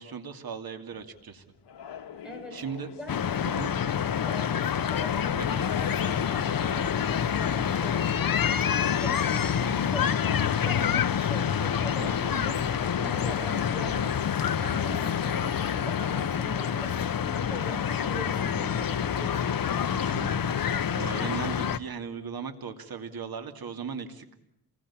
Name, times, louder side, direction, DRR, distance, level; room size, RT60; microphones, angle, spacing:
voice 1, 0.0-1.4 2.5-2.9 3.4-3.7 5.4-5.7 12.0-12.3 13.9-14.1 19.9-24.3, right 6 dB, 60° right, 6 dB, 2.6 m, -38 dB
sound 1, 0.9-15.4, left 8 dB, 85° left, 1.8 m, -46 dB
voice 2, 2.2-2.6 3.0-3.3 4.2-5.5 5.8-8.4 8.9-14.1 14.5-19.8, equal, ahead, 3 dB, 6.4 m, -42 dB
sound 2, 3.1-21.8, left 8 dB, 55° left, 1.0 m, -27 dB
27.5 x 20.5 x 8.7 m, 0.77 s
wide cardioid pair, 120°, 40 cm